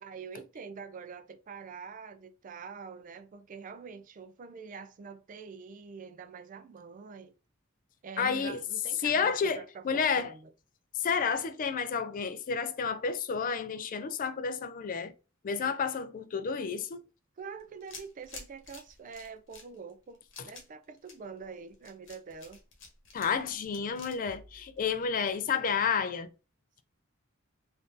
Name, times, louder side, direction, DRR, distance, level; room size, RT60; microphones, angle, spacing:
voice 1, 0.0-7.3 8.0-10.5 17.4-22.6, right 5 dB, 40° right, 0.4 m, -45 dB
voice 2, 8.2-8.6 9.0-10.3 11.0-15.1 15.4-17.0 20.4-20.5 23.1-26.3, left 6 dB, 40° left, 0.3 m, -30 dB
sound 1, 17.6-25.3, left 3 dB, 65° left, 1.0 m, -50 dB
3.6 x 2.5 x 2.5 m
head